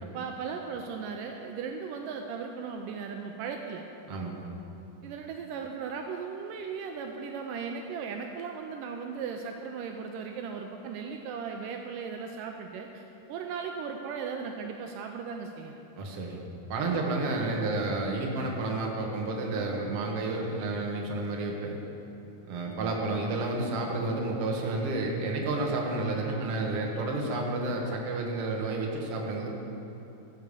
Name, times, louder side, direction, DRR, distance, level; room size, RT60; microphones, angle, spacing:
voice 1, 0.0-3.8 5.0-15.8, right 6 dB, 80° right, 4 dB, 2.1 m, -37 dB
voice 2, 4.1-4.4 16.0-16.4 16.7-21.8 22.5-29.5, right 2 dB, 55° right, 0 dB, 1.9 m, -30 dB
14.5 x 6.8 x 6.8 m, 2.9 s
omnidirectional pair, 4.0 m